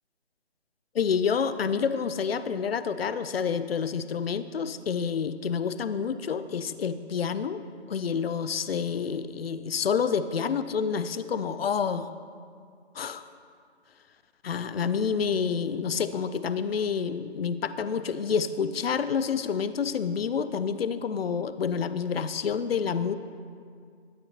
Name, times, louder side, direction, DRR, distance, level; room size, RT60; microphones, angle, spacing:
voice 1, 0.9-7.6 7.9-12.1 12.9-13.2 14.4-23.1, left 6 dB, 60° left, 13 dB, 0.7 m, -28 dB
21.0 x 9.1 x 2.9 m, 2.2 s
figure-of-eight pair, 155°, 33 cm